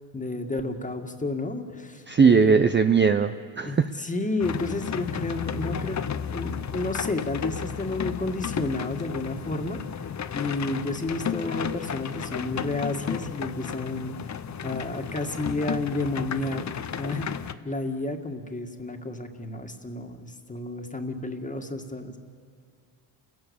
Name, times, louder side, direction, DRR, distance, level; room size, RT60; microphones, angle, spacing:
voice 1, 0.1-2.6 3.6-6.0 6.3-10.0 10.3-14.2 14.6-16.7 17.0-22.2, left 2 dB, 15° left, 4 dB, 2.1 m, -31 dB
voice 2, 2.1-3.9, right 5 dB, 25° right, 9 dB, 0.6 m, -19 dB
sound 1, 4.4-17.5, left 8 dB, 35° left, 0.9 m, -33 dB
30.0 x 17.0 x 7.2 m, 2.3 s
cardioid pair, 95°, 49 cm